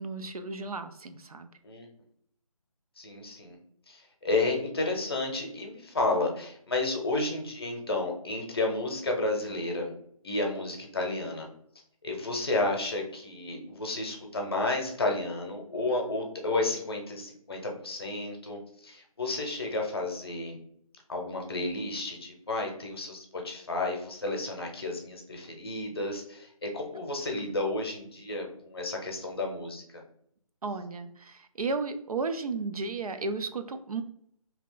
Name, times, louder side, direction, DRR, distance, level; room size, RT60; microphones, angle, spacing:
voice 1, 0.0-1.5 30.6-34.0, right 3 dB, 75° right, 9 dB, 0.5 m, -34 dB
voice 2, 3.0-3.6 3.9-9.9 10.2-11.5 12.0-20.6 21.1-29.8, left 2 dB, 40° left, 2 dB, 0.7 m, -31 dB
2.8 x 2.4 x 3.7 m, 0.68 s
figure-of-eight pair, 165°, 19 cm